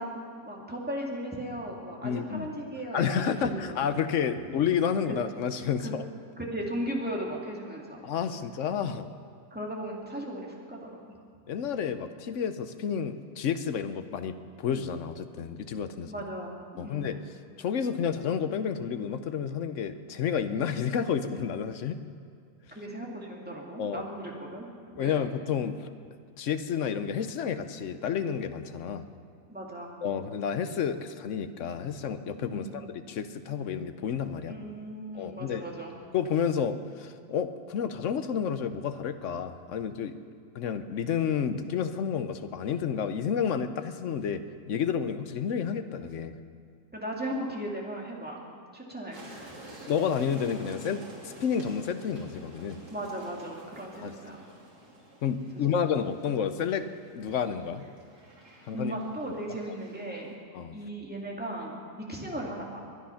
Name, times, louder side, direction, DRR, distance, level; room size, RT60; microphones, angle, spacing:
voice 1, 0.0-3.8 5.1-5.2 5.8-6.0 6.4-8.0 9.5-10.9 16.1-17.1 22.7-25.2 29.5-29.9 32.5-32.7 34.5-35.9 46.9-48.4 48.7-49.5 52.9-54.4 55.7-55.8 58.5-60.4 60.7-62.8, right 1 dB, 5° right, -2 dB, 2.3 m, -37 dB
voice 2, 2.0-2.5 2.9-6.0 8.0-9.1 11.5-16.1 16.8-17.2 17.6-22.0 23.8-24.0 25.0-25.8 26.4-29.0 30.0-34.6 35.1-35.6 36.1-40.1 40.5-44.4 44.7-46.3 49.9-52.8 54.0-54.1 55.2-56.9 57.1-57.8 58.7-58.9 60.5-60.7, left 7 dB, 60° left, 10 dB, 0.9 m, -30 dB
sound 1, 49.1-60.3, right 1 dB, 75° right, 3.5 m, -50 dB
22.0 x 10.0 x 5.7 m, 2.3 s
omnidirectional pair, 1.8 m